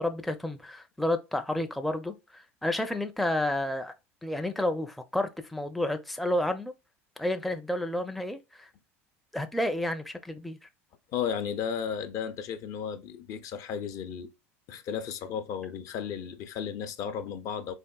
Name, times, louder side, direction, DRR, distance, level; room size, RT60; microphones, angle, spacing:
voice 1, 0.0-3.9 4.2-6.7 7.2-8.7 9.3-10.6, left 1 dB, ahead, 0.4 m, -30 dB
voice 2, 11.1-14.3 14.7-17.7, left 7 dB, 50° left, 0.5 m, -34 dB
3.5 x 2.5 x 2.2 m
hypercardioid pair, 80°, 7 cm